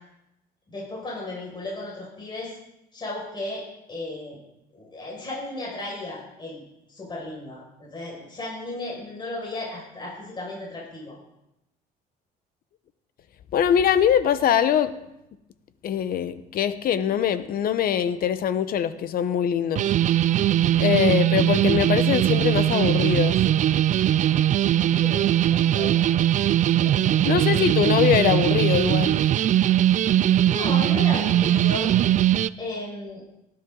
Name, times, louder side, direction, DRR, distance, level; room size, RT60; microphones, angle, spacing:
voice 1, 0.7-2.6 2.9-4.4 4.7-6.6 6.9-11.2 25.0-26.4 26.8-27.2 30.4-31.9 32.6-33.2, left 2 dB, 25° left, -4 dB, 6.1 m, -35 dB
voice 2, 13.5-14.9 15.8-19.9 20.8-23.4 27.2-29.2, left 9 dB, 60° left, 12 dB, 1.0 m, -22 dB
sound 1, 19.8-32.5, right 11 dB, 45° right, 0.4 m, -20 dB
19.0 x 11.0 x 4.0 m, 0.87 s
cardioid pair, 110°, 17 cm